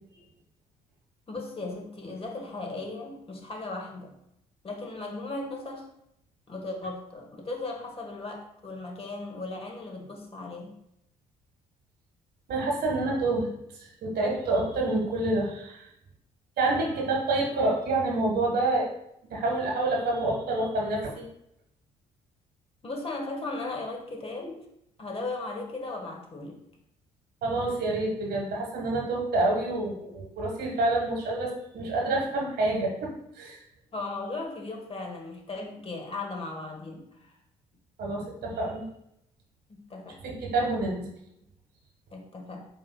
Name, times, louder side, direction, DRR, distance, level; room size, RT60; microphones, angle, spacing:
voice 1, 1.3-4.2 4.6-5.9 6.5-10.7 22.8-24.6 25.0-26.6 33.9-37.3 39.7-40.2 42.1-42.7, left 2 dB, 30° left, 2 dB, 1.3 m, -37 dB
voice 2, 12.5-13.5 13.8-15.9 16.6-18.9 19.3-21.2 27.4-33.6 38.0-38.8 40.2-41.0, right 2 dB, 55° right, -1 dB, 1.4 m, -27 dB
8.2 x 2.9 x 2.2 m, 0.79 s
figure-of-eight pair, 50°, 20 cm